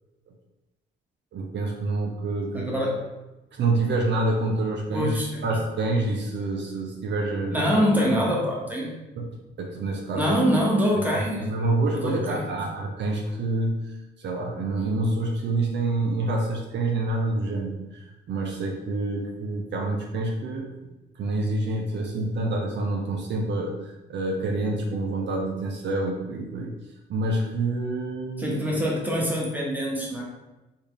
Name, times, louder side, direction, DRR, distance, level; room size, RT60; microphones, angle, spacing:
voice 1, 1.3-2.7 3.5-7.6 9.2-10.4 11.2-20.7 21.2-26.7 27.1-28.6, right 2 dB, 65° right, 1 dB, 0.7 m, -27 dB
voice 2, 2.5-3.0 4.9-5.3 7.5-9.0 10.1-11.5 11.9-12.6 28.4-30.2, equal, 10° right, -3 dB, 1.4 m, -24 dB
4.3 x 3.6 x 3.4 m, 1.0 s
cardioid pair, 90°, 20 cm